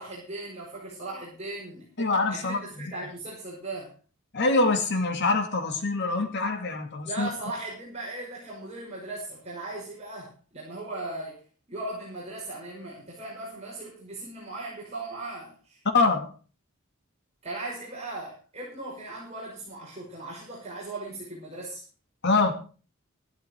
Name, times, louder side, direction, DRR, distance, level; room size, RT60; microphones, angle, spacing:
voice 1, 0.0-1.9 2.3-3.9 7.0-11.4 11.7-15.8 17.4-21.8, right 2 dB, 30° right, 6.0 m, -38 dB
voice 2, 2.0-2.9 4.3-7.3 15.9-16.3 22.2-22.5, left 3 dB, 55° left, 2.4 m, -25 dB
14.0 x 12.5 x 4.7 m
head